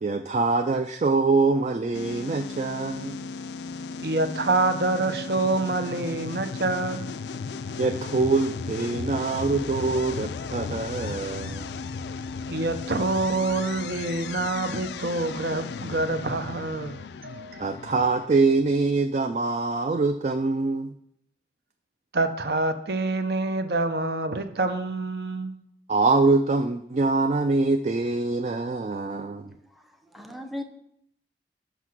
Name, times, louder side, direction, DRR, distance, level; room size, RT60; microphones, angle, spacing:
voice 1, 0.0-3.3 7.8-11.8 17.6-20.9 25.9-29.5, right 3 dB, 40° right, 7 dB, 0.4 m, -24 dB
sound 1, 1.9-18.3, left 5 dB, 75° left, 0.4 m, -35 dB
voice 2, 4.0-7.0 12.5-17.8 22.1-25.5, right 2 dB, 60° right, 8 dB, 0.7 m, -26 dB
voice 3, 29.5-30.6, left 1 dB, ahead, 5 dB, 0.6 m, -39 dB
7.9 x 5.7 x 6.1 m, 0.74 s
head